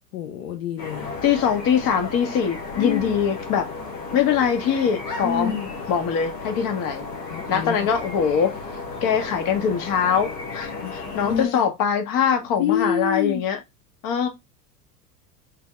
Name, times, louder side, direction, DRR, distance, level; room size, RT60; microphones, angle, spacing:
voice 1, 0.1-1.1 2.8-3.2 5.2-5.7 7.3-7.9 10.8-11.7 12.6-13.4, left 9 dB, 60° left, 0.8 m, -27 dB
sound 1, 0.8-11.4, left 3 dB, 90° left, 1.3 m, -34 dB
voice 2, 1.2-3.7 4.1-5.6 5.9-7.0 7.5-8.5 9.0-13.6 14.0-14.3, left 7 dB, 45° left, 1.1 m, -22 dB
3.5 x 2.8 x 3.4 m
hypercardioid pair, 85°, 47 cm